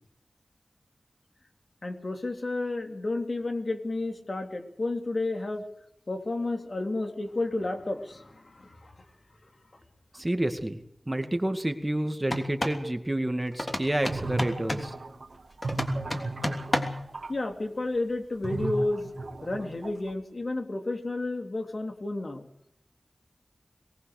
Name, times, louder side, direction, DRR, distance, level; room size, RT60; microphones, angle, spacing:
voice 1, 1.8-5.6 6.1-8.9 10.1-10.2 17.3-19.1 19.4-22.5, left 2 dB, 55° left, 4 dB, 3.4 m, -31 dB
voice 2, 10.1-10.8 11.1-14.9, right 1 dB, 20° right, 7 dB, 2.2 m, -29 dB
sound 1, 12.2-12.8 13.6-14.9 15.6-17.1, left 1 dB, 30° left, 3.2 m, -31 dB
sound 2, 13.8-17.3 18.4-20.1, right 2 dB, 75° right, 2.9 m, -36 dB
22.5 x 19.0 x 6.7 m, 0.76 s
wide cardioid pair, 65°, 0 cm